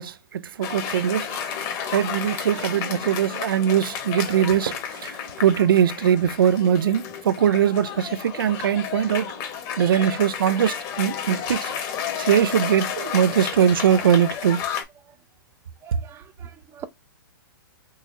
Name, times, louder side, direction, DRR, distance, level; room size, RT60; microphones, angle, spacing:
voice 1, 0.0-1.3 1.9-9.3 9.8-11.7 12.2-14.6 15.9-16.0, right 9 dB, 75° right, 0.4 m, -21 dB
Cheering / Applause, 0.6-14.8, left 8 dB, 35° left, 1.0 m, -32 dB
voice 2, 1.3-2.7 5.6-5.7 9.8-10.0 10.9-11.0 15.8-16.8, right 8 dB, 20° right, 0.6 m, -44 dB
3.9 x 2.7 x 2.5 m
hypercardioid pair, 130°, 12 cm